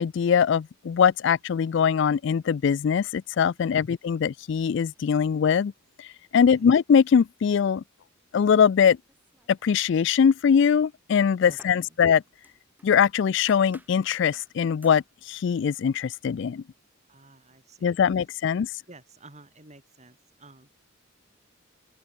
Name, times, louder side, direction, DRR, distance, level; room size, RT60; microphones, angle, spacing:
voice 1, 0.0-5.7 6.0-7.8 8.3-9.0 9.5-12.2 12.8-16.6 17.8-18.7, left 7 dB, 60° left, 0.3 m, -22 dB
voice 2, 6.3-6.7 11.4-12.0 17.1-18.3 18.9-20.7, right 2 dB, 30° right, 5.3 m, -52 dB
sound 1, 9.1-9.9 10.2-13.0 13.5-14.0 14.3-14.6 14.8-15.1, right 1 dB, 10° right, 4.0 m, -56 dB
open air
head